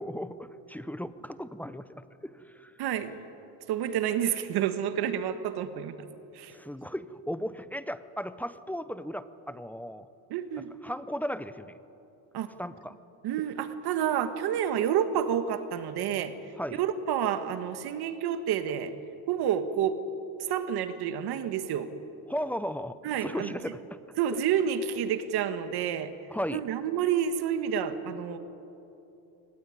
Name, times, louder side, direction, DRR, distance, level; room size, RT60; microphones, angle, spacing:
voice 1, 0.0-2.7 6.5-10.1 10.8-11.8 12.6-12.9 16.6-16.8 22.3-24.0 24.3-24.4 26.3-26.6, equal, 5° left, 13 dB, 0.6 m, -36 dB
voice 2, 2.8-3.3 3.7-6.1 6.3-6.5 10.3-10.7 12.3-12.5 13.2-16.3 16.7-18.9 19.3-20.0 20.4-21.9 23.0-23.6 24.2-26.1 26.5-28.4, right 9 dB, 60° right, 10 dB, 1.6 m, -29 dB
23.5 x 18.5 x 9.8 m, 3.0 s
cardioid pair, 130°, 43 cm